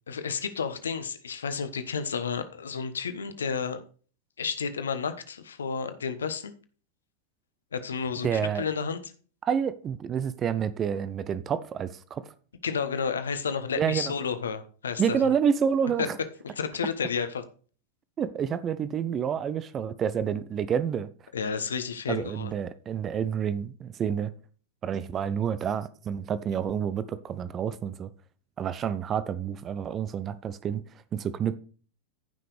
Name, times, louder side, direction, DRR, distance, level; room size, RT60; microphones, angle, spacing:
voice 1, 0.1-3.8 4.4-6.5 7.7-9.1 12.6-15.2 16.0-16.1 16.4-17.4 21.3-22.5, left 6 dB, 70° left, 1.2 m, -31 dB
voice 2, 8.2-8.6 9.4-12.3 13.8-14.1 15.0-16.2 18.2-21.1 22.1-24.3 24.8-28.1 28.6-30.8 31.1-31.6, right 8 dB, 25° right, 0.7 m, -28 dB
14.0 x 5.9 x 3.4 m
figure-of-eight pair, 90°, 0 cm